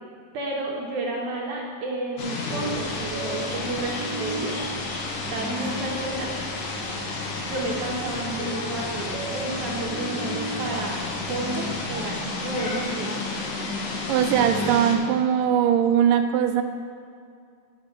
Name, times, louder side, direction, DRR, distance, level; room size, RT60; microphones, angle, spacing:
voice 1, 0.3-4.5 5.2-6.3 6.7-6.9 7.5-11.0 11.3-13.2, right 2 dB, 70° right, -2 dB, 2.1 m, -31 dB
sound 1, 2.2-15.0, left 3 dB, 75° left, 2.8 m, -31 dB
sound 2, 2.5-14.7, equal, 25° right, 1.3 m, -37 dB
voice 2, 14.1-16.6, right 9 dB, 85° right, 6 dB, 2.2 m, -20 dB
9.0 x 6.7 x 6.5 m, 2.4 s
omnidirectional pair, 3.9 m